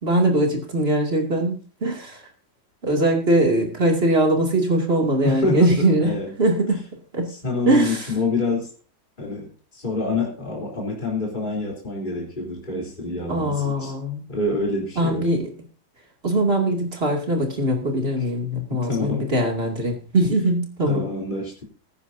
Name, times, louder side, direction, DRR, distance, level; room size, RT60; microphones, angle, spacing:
voice 1, 0.0-2.2 2.8-6.1 6.4-6.8 7.1-7.3 7.7-8.0 13.3-14.2 15.0-15.5 16.2-21.1, right 1 dB, 30° right, 2 dB, 2.8 m, -21 dB
voice 2, 5.2-6.3 7.3-8.7 9.2-13.9 14.3-15.3 18.2-18.3 18.7-19.3 20.8-21.6, left 3 dB, 25° left, -2 dB, 3.8 m, -27 dB
21.0 x 9.9 x 2.7 m, 0.38 s
omnidirectional pair, 2.1 m